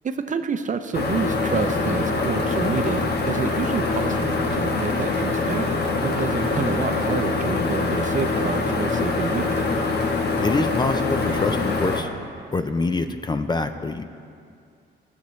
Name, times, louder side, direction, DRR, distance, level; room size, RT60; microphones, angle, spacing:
voice 1, 0.0-5.7 6.0-9.7, right 6 dB, 40° right, 8 dB, 0.6 m, -28 dB
sound 1, 0.9-12.0, left 3 dB, 55° left, 1.3 m, -24 dB
voice 2, 10.4-12.1 12.5-14.0, left 3 dB, 20° left, 9 dB, 0.5 m, -25 dB
18.5 x 6.6 x 3.2 m, 2.3 s
cardioid pair, 90°, 20 cm